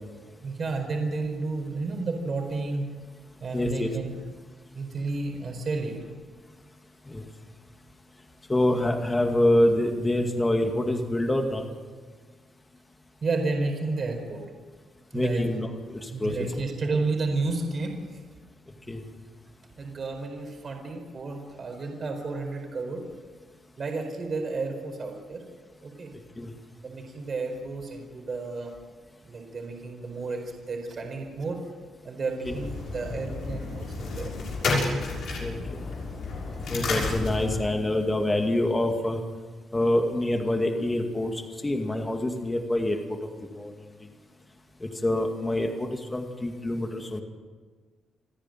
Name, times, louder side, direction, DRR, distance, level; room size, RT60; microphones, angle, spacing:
voice 1, 0.4-2.9 3.4-4.2 4.7-5.9 13.2-14.4 15.1-15.5 16.1-18.0 19.8-23.1 23.8-25.4 25.8-26.1 26.8-28.7 29.2-31.6 32.0-34.3, right 3 dB, 40° right, 3 dB, 4.6 m, -31 dB
voice 2, 3.5-3.9 7.1-7.3 8.5-11.7 15.1-15.7 16.0-16.3 18.9-19.0 26.4-26.5 35.4-35.8 36.7-39.2 39.7-43.0 43.5-43.7 44.8-47.2, left 1 dB, 15° left, 4 dB, 2.2 m, -26 dB
sound 1, 32.4-37.7, left 3 dB, 70° left, 6.5 m, -31 dB
28.5 x 10.5 x 9.1 m, 1.5 s
cardioid pair, 120°, 0 cm